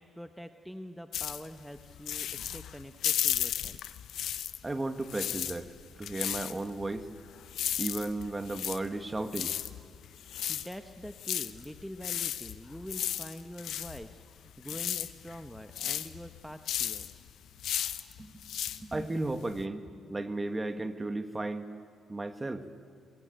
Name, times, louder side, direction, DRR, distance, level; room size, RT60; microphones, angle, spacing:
voice 1, 0.0-3.8 10.1-17.1, equal, ahead, 7 dB, 1.0 m, -45 dB
sound 1, 1.1-4.7 5.0-19.6, left 10 dB, 75° left, 0.9 m, -35 dB
sound 2, 2.3-2.5 4.2-4.4 6.3-6.6 7.3-7.5 9.4-9.7 10.3-10.6 11.5-11.7 12.6-12.9, left 4 dB, 45° left, 8.0 m, -62 dB
voice 2, 4.6-7.1 7.8-9.5 18.2-18.4 18.8-21.7 22.1-22.6, right 2 dB, 20° right, 9 dB, 1.6 m, -34 dB
23.5 x 22.0 x 9.2 m, 2.2 s
cardioid pair, 90°, 0 cm